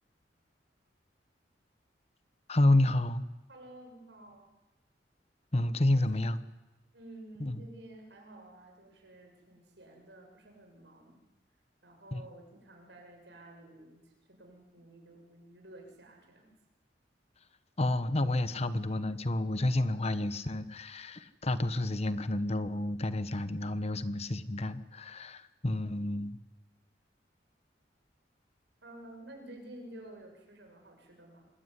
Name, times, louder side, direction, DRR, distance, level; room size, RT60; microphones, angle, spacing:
voice 1, 2.5-3.2 5.5-6.4 7.4-7.6 12.1-12.2 17.8-26.4, left 1 dB, 35° left, 13 dB, 1.2 m, -30 dB
voice 2, 3.5-4.5 5.9-6.3 6.9-11.3 11.8-16.6 28.8-31.5, right 1 dB, 75° right, 3 dB, 7.5 m, -52 dB
26.0 x 22.0 x 9.9 m, 1.0 s
head